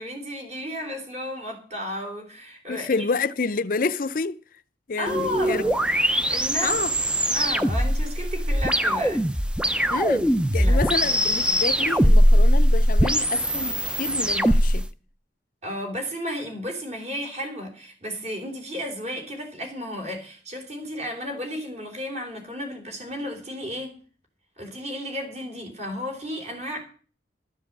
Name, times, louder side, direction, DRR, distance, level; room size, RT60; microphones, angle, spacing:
voice 1, 0.0-3.1 5.0-5.8 6.3-6.8 7.3-9.3 10.6-11.1 15.6-23.9 24.6-26.8, equal, 40° right, 3.6 m, -33 dB
voice 2, 2.7-4.4 4.9-5.6 6.6-6.9 9.9-14.9, left 4 dB, 50° left, 0.6 m, -28 dB
sound 1, 5.1-14.8, equal, 5° right, 0.5 m, -21 dB
13.0 x 7.4 x 7.4 m
head